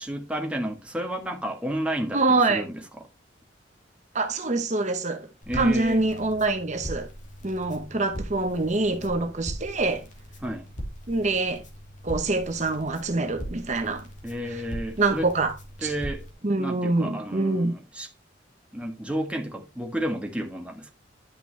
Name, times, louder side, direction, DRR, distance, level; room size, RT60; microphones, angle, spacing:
voice 1, 0.1-2.7 5.5-6.0 10.4-10.7 14.2-15.3 15.8-16.2 16.6-18.1 18.7-20.9, equal, 5° right, 1.3 m, -31 dB
voice 2, 2.1-2.6 4.1-5.3 5.5-7.1 7.4-10.0 11.1-11.6 12.0-14.1 14.5-14.6 15.0-15.6 15.8-15.9 16.4-17.7, right 2 dB, 40° right, 0.9 m, -25 dB
Crackle, 5.4-16.3, equal, 45° left, 2.6 m, -40 dB
10.5 x 5.9 x 3.3 m
head